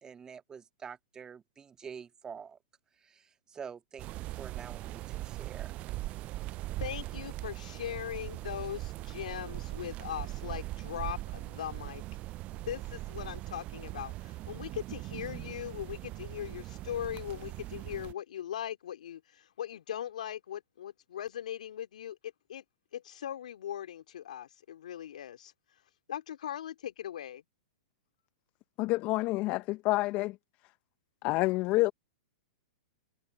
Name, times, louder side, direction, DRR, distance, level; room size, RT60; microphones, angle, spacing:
voice 1, 0.0-2.6 3.0-5.8, right 6 dB, 20° right, 1.9 m, -47 dB
sound 1, 4.0-18.1, right 17 dB, 35° right, 0.4 m, -40 dB
voice 2, 6.8-12.0 12.5-22.6 22.9-25.5 26.1-27.4, left 10 dB, 75° left, 3.1 m, -40 dB
voice 3, 28.8-30.4 31.2-31.9, left 20 dB, 40° left, 0.8 m, -28 dB
hypercardioid pair, 120°, 4 cm